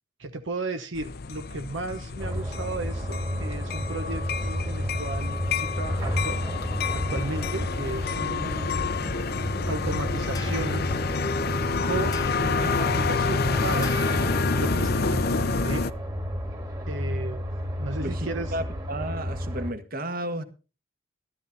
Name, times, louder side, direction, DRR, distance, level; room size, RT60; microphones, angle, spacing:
voice 1, 0.2-6.4 6.9-8.7 9.7-10.9 11.8-13.9 14.6-15.2 15.6-15.8 16.9-17.4 17.8-18.5, right 2 dB, 75° right, 1.0 m, -34 dB
sound 1, 0.9-15.9, left 4 dB, 55° left, 0.6 m, -29 dB
sound 2, 2.2-19.7, equal, 20° right, 1.9 m, -31 dB
sound 3, 10.3-15.1, equal, 20° left, 0.8 m, -36 dB
voice 2, 18.0-20.4, right 1 dB, 50° right, 1.5 m, -33 dB
13.5 x 12.5 x 4.1 m
head